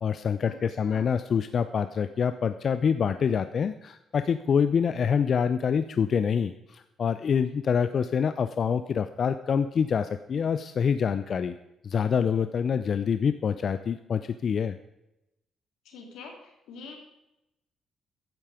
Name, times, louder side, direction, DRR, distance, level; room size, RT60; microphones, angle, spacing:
voice 1, 0.0-11.5 11.8-14.8, left 7 dB, 50° left, 11 dB, 0.6 m, -26 dB
voice 2, 15.8-17.0, left 4 dB, 85° left, 2 dB, 3.3 m, -45 dB
14.5 x 10.5 x 5.0 m, 0.92 s
cardioid pair, 90°, 0 cm